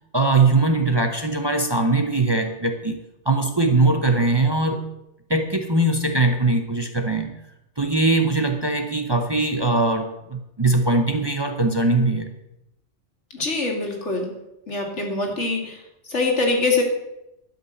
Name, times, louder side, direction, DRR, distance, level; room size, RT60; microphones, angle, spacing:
voice 1, 0.1-3.0 3.3-4.9 5.3-7.4 7.8-12.3, right 2 dB, 25° right, 5 dB, 0.8 m, -21 dB
voice 2, 13.3-14.3 14.7-15.8 16.1-16.8, left 3 dB, 75° left, 2 dB, 2.5 m, -23 dB
12.0 x 5.6 x 7.9 m, 0.87 s
omnidirectional pair, 1.2 m